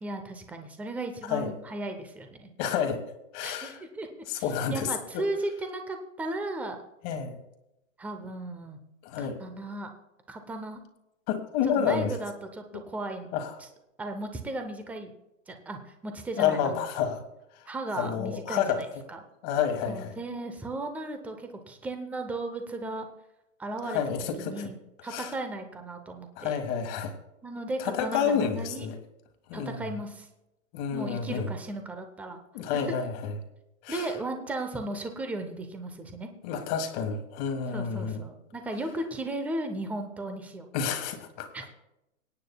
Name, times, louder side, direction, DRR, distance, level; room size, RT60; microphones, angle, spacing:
voice 1, 0.0-2.5 3.4-4.1 4.4-6.8 8.0-8.8 9.2-9.9 10.3-10.8 11.6-13.3 14.0-15.1 15.5-16.9 17.7-19.2 19.9-23.1 23.6-24.0 24.4-24.8 25.0-26.5 27.4-28.9 29.5-30.3 30.9-32.4 33.9-36.3 37.7-40.7 41.5-41.7, right 2 dB, 5° right, 6 dB, 0.7 m, -36 dB
voice 2, 2.6-3.0 3.3-3.8 4.3-5.2 7.0-7.4 9.0-9.4 11.3-12.1 12.7-12.8 13.3-13.5 16.4-17.2 17.9-18.8 19.4-20.1 23.8-24.7 25.1-25.3 26.4-27.1 27.8-28.9 29.5-29.9 30.7-31.5 32.5-33.4 33.8-34.1 36.4-38.2 40.7-41.5, left 7 dB, 30° left, 6 dB, 1.6 m, -29 dB
25.0 x 9.2 x 2.3 m, 0.89 s
hypercardioid pair, 145°, 40 cm